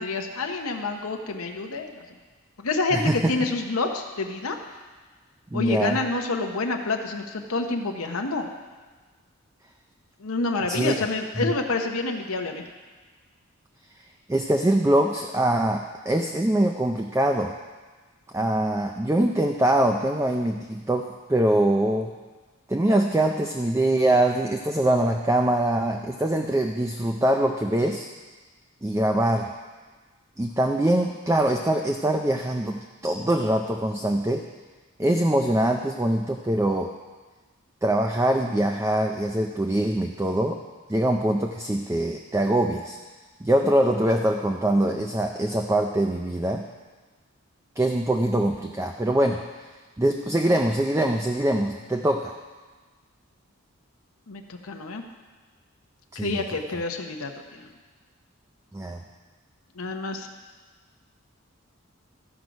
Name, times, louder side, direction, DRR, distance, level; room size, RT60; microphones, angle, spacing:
voice 1, 0.0-2.0 2.6-4.6 5.5-8.5 10.2-12.6 54.3-55.0 56.1-57.7 59.8-60.3, left 3 dB, 85° left, 3 dB, 0.9 m, -28 dB
voice 2, 2.9-3.3 5.5-6.0 10.6-11.0 11.4-11.5 14.3-17.5 18.3-22.1 22.7-28.1 28.8-29.5 30.4-34.5 35.0-36.9 37.8-40.6 40.9-43.0 43.4-46.7 47.8-49.4 50.0-52.3 56.1-56.4 58.7-59.0, right 1 dB, 15° right, 3 dB, 0.4 m, -23 dB
14.5 x 6.2 x 5.2 m, 1.3 s
head